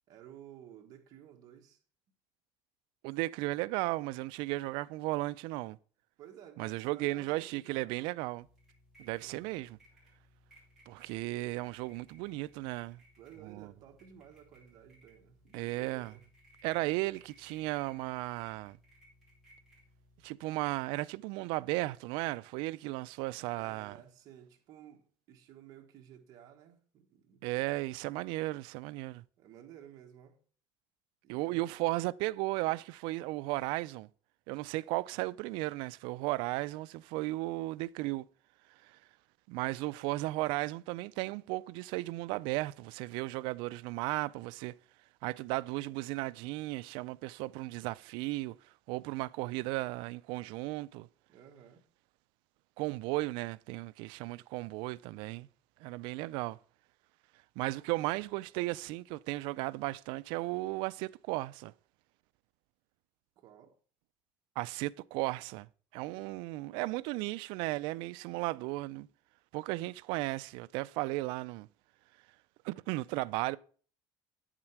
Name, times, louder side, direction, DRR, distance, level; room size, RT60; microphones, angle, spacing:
voice 1, 0.1-1.8 6.2-8.0 9.1-9.6 13.2-16.2 23.6-27.4 29.4-30.4 31.2-31.8 51.3-51.8 63.4-63.8 66.1-66.3, right 10 dB, 45° right, 1.4 m, -55 dB
voice 2, 3.0-5.8 6.6-8.5 9.0-9.8 10.9-13.0 13.4-13.7 15.5-16.1 16.6-18.8 20.2-23.9 27.4-29.2 31.3-34.1 34.5-38.3 38.8-39.0 39.5-44.8 45.2-48.6 48.9-51.1 52.8-55.5 55.8-56.6 57.6-61.7 64.6-65.7 65.9-69.1 69.5-71.7 72.6-73.6, right 20 dB, 70° right, 0.4 m, -35 dB
sound 1, 8.4-20.3, equal, ahead, 4.6 m, -63 dB
8.8 x 7.4 x 4.5 m
cardioid pair, 175°, 9 cm